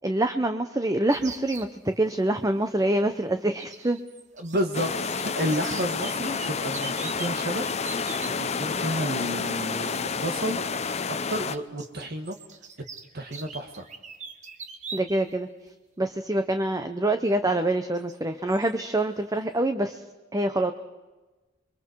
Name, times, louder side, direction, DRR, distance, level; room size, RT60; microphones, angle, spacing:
voice 1, 0.0-4.0 14.9-15.5 16.0-20.0 20.3-20.7, right 1 dB, 20° right, 8 dB, 0.9 m, -25 dB
sound 1, 1.1-1.7 3.6-4.7 4.9-8.3 9.7-9.9 11.1-15.3 15.7-15.8 17.3-17.4 17.9-18.2 18.5-18.7, right 4 dB, 40° right, 1.5 m, -42 dB
voice 2, 4.4-7.6 8.3-10.6 11.0-12.4 13.1-13.9, equal, 55° right, 5 dB, 2.1 m, -31 dB
sound 2, 4.7-11.6, left 5 dB, 35° left, 0.8 m, -29 dB
28.5 x 23.5 x 4.8 m, 1.2 s
head